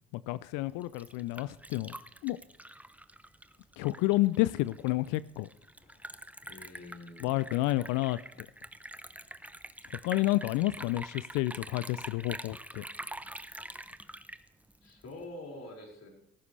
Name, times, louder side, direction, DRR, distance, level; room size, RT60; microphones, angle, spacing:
voice 1, 0.1-1.9 2.2-2.4 3.8-5.5 7.2-8.2 10.0-12.8, left 18 dB, 70° left, 18 dB, 0.5 m, -30 dB
Liquid, 0.7-15.2, right 1 dB, 5° right, 0.9 m, -46 dB
voice 2, 6.4-7.4 14.8-16.1, left 2 dB, 50° left, 0 dB, 5.3 m, -46 dB
17.0 x 14.5 x 3.3 m, 0.89 s
hypercardioid pair, 60°, 33 cm